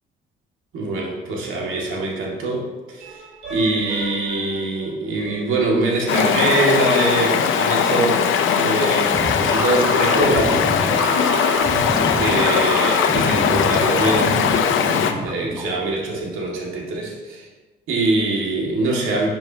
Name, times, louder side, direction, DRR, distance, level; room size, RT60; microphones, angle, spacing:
voice 1, 0.7-3.2 3.5-8.3 8.6-10.7 12.1-14.4 15.2-17.5 17.9-19.3, right 2 dB, 85° right, -2 dB, 2.3 m, -23 dB
sound 1, 1.4-2.5 3.0-6.4, right 2 dB, 55° right, 2.9 m, -38 dB
Stream, 6.1-15.1, left 7 dB, 80° left, 0.8 m, -19 dB
sound 2, 9.1-15.9, right 1 dB, 20° right, 1.2 m, -27 dB
12.5 x 7.4 x 3.0 m, 1.2 s
cardioid pair, 90°, 20 cm